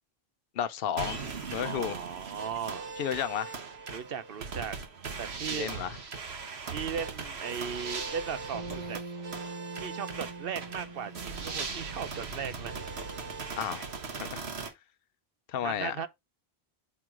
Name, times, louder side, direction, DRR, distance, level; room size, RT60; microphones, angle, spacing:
voice 1, 0.5-1.2 1.5-2.0 3.0-3.6 5.5-5.9 13.6-13.9 14.2-14.5 15.5-16.0, left 9 dB, 65° left, 0.9 m, -32 dB
sound 1, 1.0-14.7, right 4 dB, 90° right, 1.5 m, -39 dB
voice 2, 1.6-2.9 3.9-4.8 5.2-5.7 6.7-9.0 9.8-12.9 15.6-16.1, right 7 dB, 65° right, 0.9 m, -37 dB
Bass guitar, 8.5-12.9, right 3 dB, 45° right, 0.4 m, -44 dB
7.0 x 4.6 x 3.8 m
omnidirectional pair, 1.1 m